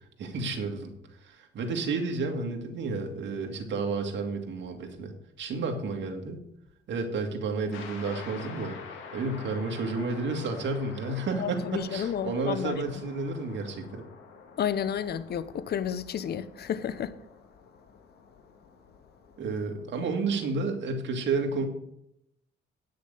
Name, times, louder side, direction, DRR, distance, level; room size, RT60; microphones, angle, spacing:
voice 1, 0.2-0.9 1.2-5.1 5.4-6.4 6.9-8.8 9.1-14.0 19.4-21.7, right 3 dB, 65° right, 2.1 m, -31 dB
sound 1, 7.7-20.2, left 5 dB, 90° left, 1.8 m, -48 dB
voice 2, 11.4-12.8 14.6-17.1, left 8 dB, 55° left, 0.7 m, -31 dB
9.5 x 6.6 x 6.8 m
cardioid pair, 90°, 20 cm